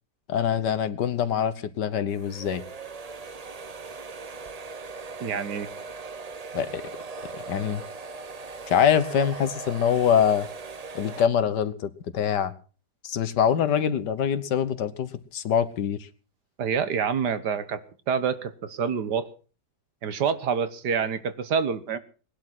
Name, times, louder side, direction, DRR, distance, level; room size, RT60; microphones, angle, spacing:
voice 1, 0.3-2.6 6.5-6.8 7.5-7.8 8.7-10.5 11.0-12.5 13.0-16.1, left 8 dB, 85° left, 13 dB, 1.8 m, -24 dB
sound 1, 2.1-11.3, right 4 dB, 35° right, 0.6 m, -39 dB
voice 2, 5.2-5.7 16.6-17.8 18.1-19.3 20.0-22.0, right 6 dB, 75° right, 12 dB, 1.8 m, -27 dB
20.0 x 11.0 x 6.0 m, 0.39 s
omnidirectional pair, 1.8 m